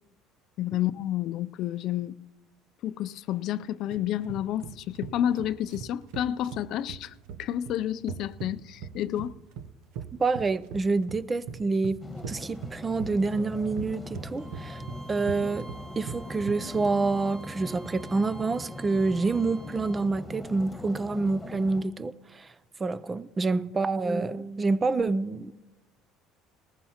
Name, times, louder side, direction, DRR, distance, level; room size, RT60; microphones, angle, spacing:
voice 1, 0.6-2.1 2.8-7.1 7.4-9.3, left 11 dB, 60° left, 0.4 m, -30 dB
sound 1, 3.9-16.9, right 7 dB, 80° right, 0.8 m, -40 dB
voice 2, 10.2-12.0 12.3-14.8 15.1-15.7 16.0-22.5 22.8-25.5, right 3 dB, 25° right, 0.4 m, -27 dB
sound 2, 12.0-21.8, left 1 dB, 10° left, 1.4 m, -41 dB
Bowed string instrument, 14.4-20.1, right 1 dB, 45° right, 1.9 m, -49 dB
19.0 x 14.5 x 2.9 m
supercardioid pair, 100°, 0 cm